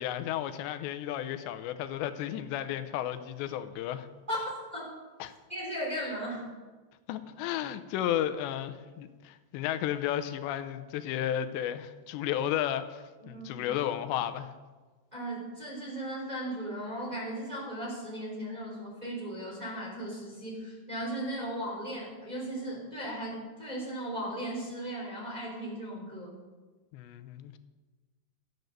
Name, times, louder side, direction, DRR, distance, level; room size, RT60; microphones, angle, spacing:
voice 1, 0.0-4.1 5.2-5.3 7.1-14.5 26.9-27.6, left 11 dB, 85° left, 10 dB, 2.9 m, -33 dB
voice 2, 4.3-4.9 5.5-6.5 13.2-13.6 15.1-26.4, right 1 dB, 10° right, -4 dB, 3.0 m, -37 dB
14.0 x 9.3 x 6.6 m, 1.3 s
omnidirectional pair, 5.1 m